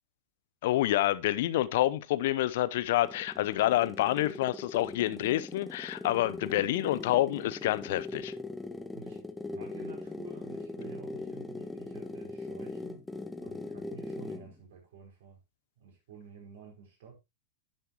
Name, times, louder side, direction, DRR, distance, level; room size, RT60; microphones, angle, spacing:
voice 1, 0.6-8.3, left 15 dB, 60° left, 0.7 m, -28 dB
sound 1, 2.8-14.5, left 2 dB, 10° left, 1.0 m, -40 dB
voice 2, 9.5-13.1 13.4-15.4 15.8-17.1, right 6 dB, 60° right, 5.0 m, -51 dB
10.5 x 7.9 x 3.0 m
figure-of-eight pair, 95°, 0 cm